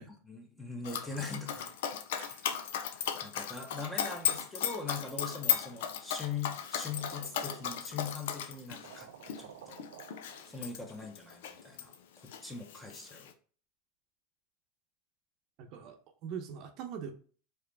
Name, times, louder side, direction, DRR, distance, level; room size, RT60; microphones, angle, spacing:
voice 1, 0.1-1.7 2.8-9.8 10.5-13.3, left 5 dB, 5° left, 2 dB, 1.0 m, -42 dB
Dog, 0.8-11.9 12.3-13.3, left 9 dB, 75° left, 0.5 m, -36 dB
voice 2, 2.2-2.5 15.6-17.1, right 7 dB, 50° right, 5 dB, 0.8 m, -43 dB
sound 1, 6.9-8.2 8.5-8.6 8.8-11.1, right 9 dB, 80° right, 0.5 m, -53 dB
4.8 x 3.0 x 3.4 m, 0.42 s
supercardioid pair, 130°, 0 cm